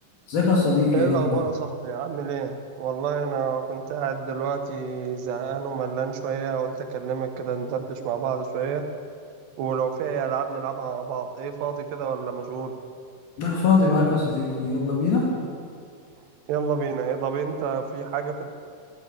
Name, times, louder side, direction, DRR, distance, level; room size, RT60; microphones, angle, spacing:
voice 1, 0.3-1.4 13.4-15.3, left 4 dB, 65° left, -3 dB, 4.0 m, -21 dB
voice 2, 0.9-8.8 9.6-12.7 16.5-18.5, right 7 dB, 85° right, 6 dB, 3.3 m, -28 dB
15.0 x 11.0 x 7.9 m, 2.3 s
omnidirectional pair, 4.7 m